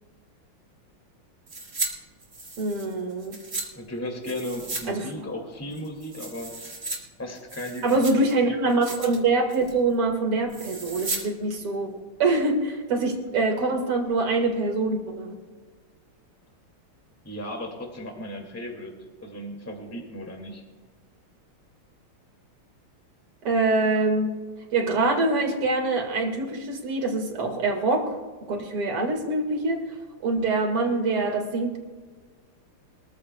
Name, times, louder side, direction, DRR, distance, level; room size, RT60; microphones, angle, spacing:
sound 1, 1.5-1.9 2.2-3.7 4.2-4.9 5.1-5.2 5.7-7.0 7.3-8.3 8.7-9.2 9.5-9.8 10.5-11.2 11.5-11.6, right 3 dB, 35° right, 2.6 m, -35 dB
voice 1, 2.6-3.4 4.9-5.1 7.8-15.4 23.4-24.3 24.7-28.2 28.5-29.8 30.2-31.8, right 3 dB, 90° right, 3 dB, 3.0 m, -24 dB
voice 2, 3.7-6.7 7.2-8.5 17.2-18.9 19.2-20.6, left 1 dB, 5° left, 1 dB, 2.2 m, -36 dB
23.0 x 14.5 x 2.3 m, 1.4 s
omnidirectional pair, 2.4 m